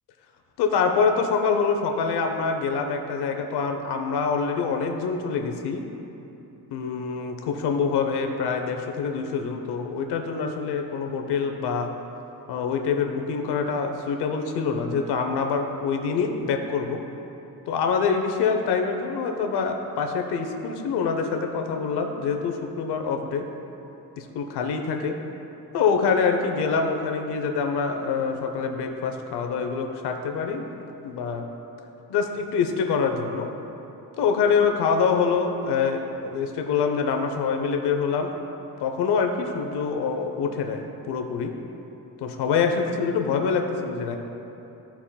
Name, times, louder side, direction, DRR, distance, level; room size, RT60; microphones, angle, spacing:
voice 1, 0.6-5.8 6.7-11.9 12.5-17.0 17.7-23.4 24.2-25.2 25.7-30.6 31.0-31.4 32.1-33.5 34.2-38.3 38.8-41.5 42.2-44.2, left 5 dB, 85° left, 4 dB, 0.8 m, -25 dB
12.5 x 5.7 x 2.2 m, 3.0 s
cardioid pair, 120°, 39 cm